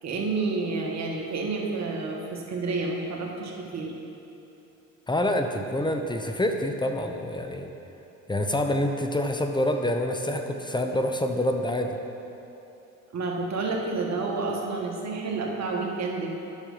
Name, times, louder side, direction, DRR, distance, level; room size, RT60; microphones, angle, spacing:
voice 1, 0.0-3.9 13.1-16.3, right 3 dB, 50° right, 0 dB, 1.6 m, -29 dB
voice 2, 5.1-7.7 8.3-12.0, left 1 dB, 15° left, 4 dB, 0.7 m, -27 dB
8.9 x 6.4 x 5.5 m, 2.9 s
supercardioid pair, 75°, 35 cm